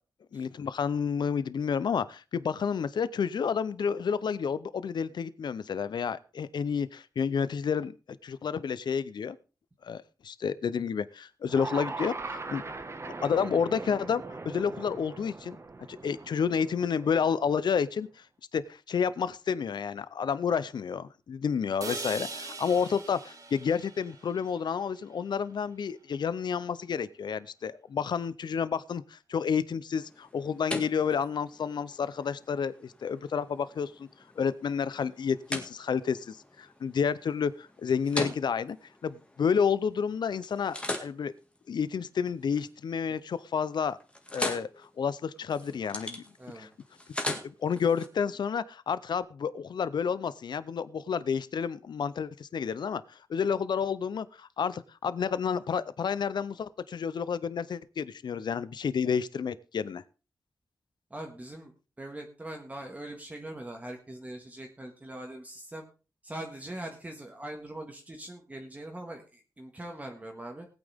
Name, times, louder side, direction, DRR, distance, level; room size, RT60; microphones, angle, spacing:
voice 1, 0.3-7.9 8.2-9.4 9.8-12.6 13.2-15.6 15.9-18.2 18.5-34.1 34.4-38.8 39.0-41.3 41.7-44.0 44.3-46.2 46.5-46.7 47.3-60.0, left 6 dB, 80° left, 16 dB, 0.6 m, -30 dB
sound 1, 11.4-17.7, right 3 dB, 35° right, 1.5 m, -40 dB
sound 2, 21.8-25.8, right 3 dB, 50° right, 2.6 m, -42 dB
sound 3, 30.0-40.0 40.4-42.7 43.1-43.5 43.8-48.1, left 1 dB, 15° left, 1.9 m, -40 dB
voice 2, 46.4-46.7 61.1-61.7 62.0-65.8 66.2-70.7, right 1 dB, 20° right, 2 dB, 1.8 m, -42 dB
19.5 x 9.0 x 3.5 m, 0.33 s
wide cardioid pair, 125°, 8 cm